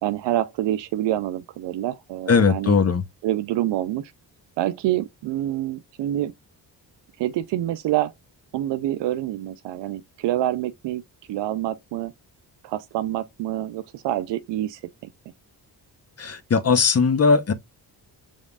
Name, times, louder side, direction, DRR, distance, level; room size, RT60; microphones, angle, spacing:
voice 1, 0.0-2.8 3.2-4.1 4.6-6.3 7.2-8.1 8.5-11.0 11.3-12.1 12.6-14.8, right 13 dB, 85° right, 0.5 m, -26 dB
voice 2, 2.3-3.0 16.2-17.5, left 5 dB, 35° left, 0.8 m, -19 dB
5.1 x 3.7 x 2.3 m
cardioid pair, 70°, 41 cm